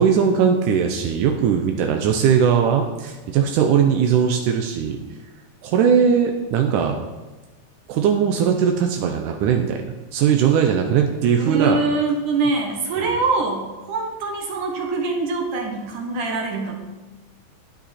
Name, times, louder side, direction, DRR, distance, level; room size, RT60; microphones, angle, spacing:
voice 1, 0.0-5.0 5.6-7.0 7.9-9.8 10.1-11.8 13.0-13.1, right 7 dB, 80° right, 3 dB, 1.9 m, -19 dB
voice 2, 11.4-16.8, right 3 dB, 65° right, 1 dB, 2.4 m, -24 dB
13.0 x 9.0 x 4.3 m, 1.2 s
omnidirectional pair, 4.6 m